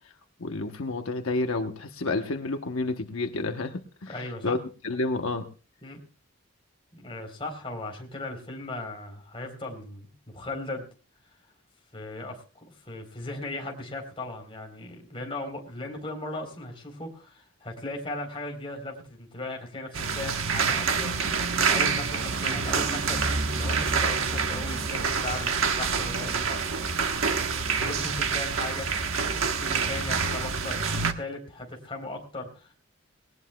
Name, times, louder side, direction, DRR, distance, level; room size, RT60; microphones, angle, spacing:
voice 1, 0.4-4.6 4.8-5.5, left 2 dB, 80° left, 5 dB, 1.0 m, -30 dB
voice 2, 4.1-4.6 5.8-6.0 6.9-10.9 11.9-21.1 21.6-26.6 27.8-32.7, left 2 dB, 25° left, 2 dB, 3.7 m, -37 dB
sound 1, 19.9-31.1, right 5 dB, 75° right, 1.2 m, -27 dB
19.0 x 19.0 x 2.3 m, 0.36 s
head